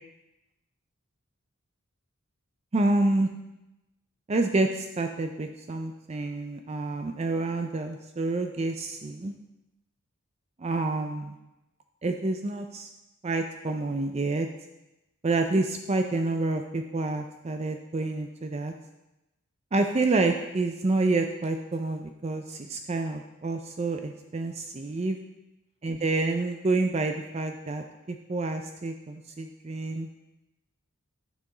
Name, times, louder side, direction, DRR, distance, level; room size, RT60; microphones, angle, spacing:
voice 1, 2.7-3.3 4.3-9.3 10.6-11.3 12.0-12.9 13.2-14.5 15.2-18.7 19.7-25.2 25.8-30.1, right 2 dB, 30° right, 5 dB, 0.4 m, -28 dB
10.5 x 6.0 x 3.8 m, 0.96 s
head